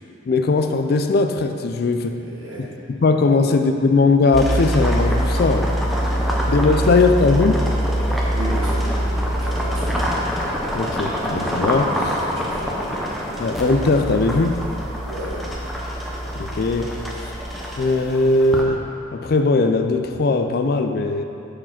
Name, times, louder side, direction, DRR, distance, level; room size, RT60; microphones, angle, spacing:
voice 1, 0.3-2.2 2.9-5.7 6.5-7.6 10.7-12.2 13.4-14.6 16.4-17.0 17.8-18.9 19.1-21.2, left 3 dB, 50° left, 7 dB, 0.3 m, -19 dB
voice 2, 2.0-2.7 3.3-3.6 8.3-8.9 9.3-10.1 12.1-12.8 15.1-15.5, right 1 dB, 70° right, -6 dB, 1.7 m, -35 dB
sound 1, 4.3-18.6, equal, ahead, 0.6 m, -24 dB
6.5 x 4.6 x 5.8 m, 2.7 s
head